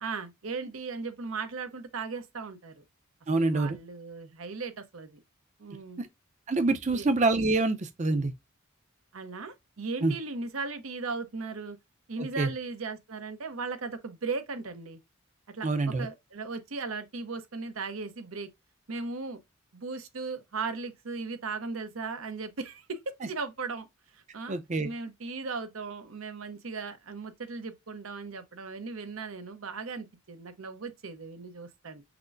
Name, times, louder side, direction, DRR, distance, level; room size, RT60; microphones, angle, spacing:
voice 1, 0.0-2.8 3.3-5.2 5.6-6.0 6.9-7.1 9.1-11.8 12.1-15.0 15.5-18.5 18.9-19.4 19.7-23.9 24.1-24.6 24.8-32.0, right 4 dB, 85° right, 0.8 m, -37 dB
voice 2, 3.3-3.8 6.0-6.1 6.5-8.3 10.0-10.1 12.2-12.5 15.6-16.1 24.5-24.9, right 3 dB, 35° right, 0.5 m, -26 dB
5.8 x 2.1 x 2.5 m
head